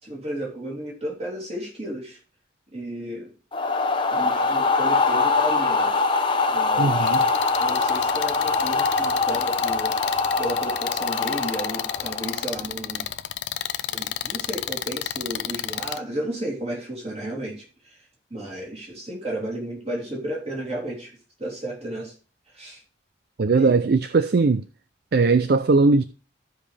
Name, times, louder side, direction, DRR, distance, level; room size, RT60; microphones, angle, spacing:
voice 1, 0.0-2.2 2.7-3.3 4.1-6.0 6.5-7.1 7.6-9.9 10.4-13.0 13.9-18.0 18.3-22.1 22.5-22.8 23.5-23.8, right 1 dB, 30° right, 3.1 m, -33 dB
sound 1, 3.5-12.6, left 4 dB, 25° left, 0.8 m, -23 dB
voice 2, 6.8-7.2 23.4-24.6 25.1-26.0, right 3 dB, 50° right, 0.4 m, -19 dB
sound 2, 7.1-16.0, left 11 dB, 65° left, 0.5 m, -31 dB
15.0 x 5.1 x 3.4 m
head